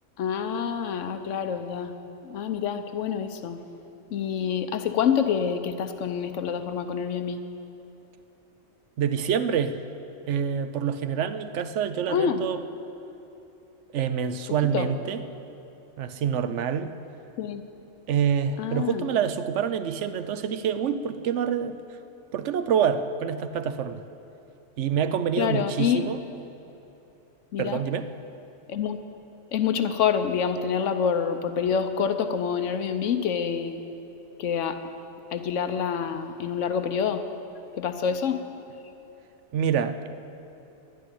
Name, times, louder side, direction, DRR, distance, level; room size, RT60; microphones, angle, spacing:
voice 1, 0.2-1.9 2.2-3.6 4.1-7.4 12.1-12.5 14.7-14.9 17.4-17.6 18.6-19.1 25.4-26.1 27.5-27.8 28.7-29.0 29.5-33.8 34.4-34.8 35.3-37.2 37.7-38.4, left 7 dB, 80° left, 8 dB, 1.0 m, -27 dB
voice 2, 9.0-9.8 10.3-12.6 13.9-15.2 16.0-16.9 18.1-21.8 22.3-24.0 24.8-26.2 27.6-28.1 39.5-40.1, right 8 dB, 75° right, 11 dB, 0.9 m, -26 dB
11.5 x 8.8 x 9.9 m, 2.9 s
omnidirectional pair, 1.3 m